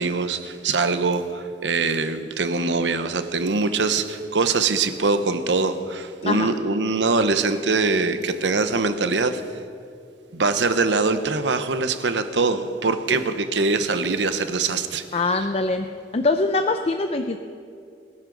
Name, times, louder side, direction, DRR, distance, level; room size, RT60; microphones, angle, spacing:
voice 1, 0.0-9.4 10.3-15.0, right 3 dB, 80° right, 10 dB, 0.9 m, -23 dB
voice 2, 15.1-15.9 16.1-17.4, left 3 dB, 35° left, 7 dB, 0.5 m, -23 dB
23.0 x 11.0 x 4.0 m, 2.4 s
head